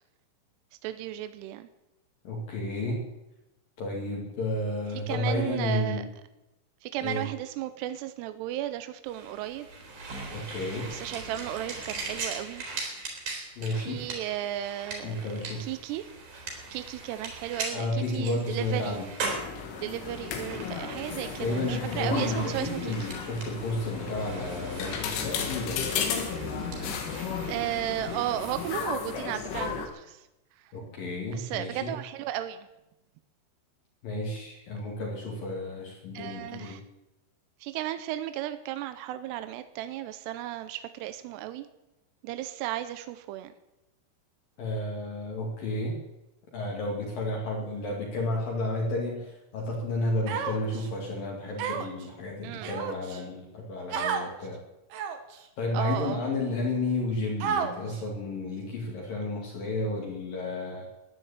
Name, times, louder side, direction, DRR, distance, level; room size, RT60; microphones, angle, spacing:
voice 1, 0.8-1.7 5.1-6.1 6.8-9.7 10.9-12.7 13.7-15.2 15.4-16.1 16.7-19.0 19.8-23.1 27.5-30.3 31.3-32.7 36.1-36.8 37.6-41.7 42.2-43.5 52.4-52.8 55.7-56.2, right 12 dB, 85° right, 11 dB, 2.4 m, -34 dB
voice 2, 2.3-3.1 3.8-6.1 7.0-7.3 10.3-10.9 13.6-14.1 15.0-15.7 17.7-19.1 21.4-25.9 30.7-32.0 34.0-36.8 44.6-46.0 46.5-54.6 55.6-60.9, left 2 dB, 50° left, -2 dB, 3.6 m, -32 dB
sound 1, 9.0-28.8, right 3 dB, 50° right, 4.8 m, -40 dB
sound 2, 19.2-29.9, left 6 dB, 80° left, 4.4 m, -34 dB
Human voice, 50.3-50.9 51.6-52.0 52.6-53.2 53.9-54.3 54.9-55.3 56.0-56.1 57.4-58.0, right 7 dB, 65° right, 2.8 m, -31 dB
14.0 x 10.0 x 8.9 m, 0.95 s
omnidirectional pair, 5.6 m